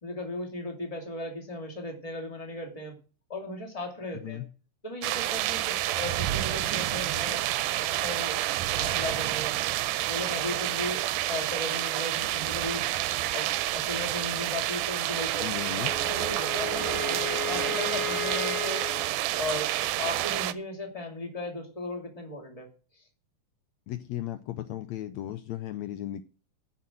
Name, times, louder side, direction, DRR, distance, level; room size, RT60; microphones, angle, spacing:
voice 1, 0.0-2.9 3.3-4.4 4.8-7.5 7.9-9.8 10.1-12.9 13.3-15.5 16.0-17.0 17.5-18.9 19.4-22.7 22.9-23.0, left 1 dB, 10° left, 2.0 m, -37 dB
voice 2, 4.1-4.5 15.4-15.9 23.9-26.2, left 13 dB, 85° left, 1.5 m, -35 dB
sound 1, 5.0-20.5, right 15 dB, 90° right, 2.5 m, -29 dB
Wind instrument woodwind instrument, 15.9-19.1, left 8 dB, 45° left, 1.3 m, -35 dB
10.5 x 7.3 x 7.6 m
omnidirectional pair, 4.1 m